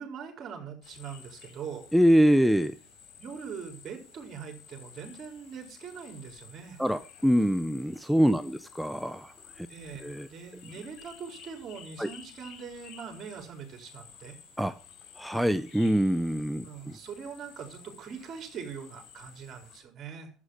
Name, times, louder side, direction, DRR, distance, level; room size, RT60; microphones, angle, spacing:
voice 1, 0.0-1.8 3.2-6.8 8.3-8.6 9.7-14.4 16.6-20.3, right 6 dB, 45° right, 4 dB, 4.4 m, -42 dB
sound 1, 0.8-19.8, left 7 dB, 65° left, 4.6 m, -53 dB
voice 2, 1.9-2.7 6.8-9.7 10.0-10.3 12.0-12.1 14.6-14.7 15.2-16.6, equal, ahead, 11 dB, 0.7 m, -24 dB
11.0 x 8.7 x 6.4 m, 0.38 s
hypercardioid pair, 80°, 0 cm